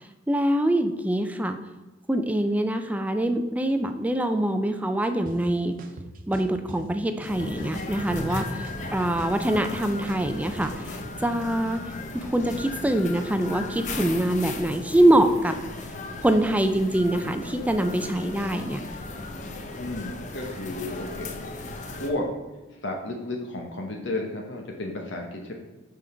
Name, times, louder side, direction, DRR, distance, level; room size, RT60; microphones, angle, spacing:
voice 1, 0.3-1.6 2.1-5.7 6.3-11.0 11.2-11.8 12.1-15.5 16.2-18.8, right 1 dB, 10° right, 7 dB, 0.4 m, -24 dB
sound 1, 5.3-5.4 5.8-6.8 7.2-8.3 8.6-10.8, right 1 dB, 50° right, 0.7 m, -41 dB
sound 2, 7.2-22.1, left 2 dB, 40° left, 0.7 m, -36 dB
voice 2, 19.8-21.3 21.9-22.3 22.8-25.5, left 2 dB, 75° left, 1 dB, 1.0 m, -32 dB
6.1 x 5.3 x 4.3 m, 1.2 s
head